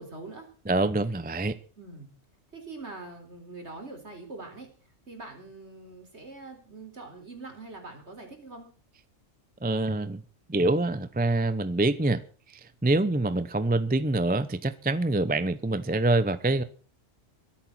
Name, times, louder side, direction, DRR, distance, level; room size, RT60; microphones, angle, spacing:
voice 1, 0.0-0.5 1.8-2.1 2.5-4.7 5.1-8.7, right 3 dB, 55° right, 4.3 m, -43 dB
voice 2, 0.7-1.6 9.6-10.2 10.5-12.2 12.5-16.6, right 2 dB, 10° right, 0.6 m, -25 dB
23.0 x 8.7 x 6.1 m
omnidirectional pair, 1.3 m